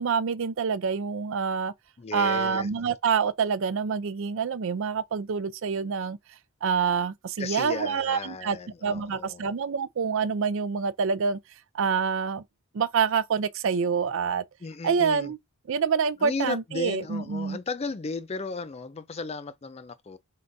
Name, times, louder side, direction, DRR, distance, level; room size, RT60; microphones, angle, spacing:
voice 1, 0.0-1.7 2.1-6.2 6.6-8.6 8.8-11.4 11.7-12.4 12.7-14.4 14.8-15.4 15.7-17.6, right 6 dB, 65° right, 0.4 m, -26 dB
voice 2, 2.0-2.7 7.4-9.5 14.6-15.3 16.2-20.2, left 4 dB, 30° left, 0.4 m, -35 dB
4.4 x 3.7 x 2.6 m
head